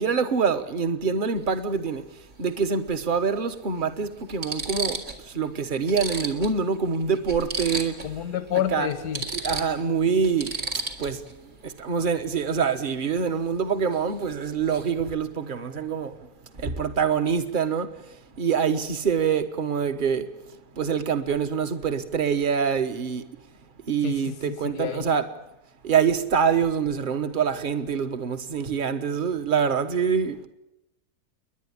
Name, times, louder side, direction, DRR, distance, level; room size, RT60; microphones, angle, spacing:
voice 1, 0.0-2.1 2.4-8.1 8.7-8.9 9.3-10.6 11.0-11.2 11.6-16.2 16.5-18.0 18.4-20.3 20.8-23.2 23.9-25.3 25.8-30.4, right 6 dB, 35° right, 1.3 m, -25 dB
sound 1, 1.4-1.5 3.0-3.1 3.8-3.9 4.3-5.2 5.5-5.6 5.9-8.2 8.5-8.6 8.9-11.3 13.9-14.1 14.4-14.9, right 3 dB, 60° right, 2.8 m, -33 dB
voice 2, 8.0-9.2 24.0-25.1, left 11 dB, 90° left, 1.7 m, -29 dB
30.0 x 11.0 x 9.8 m
omnidirectional pair, 1.7 m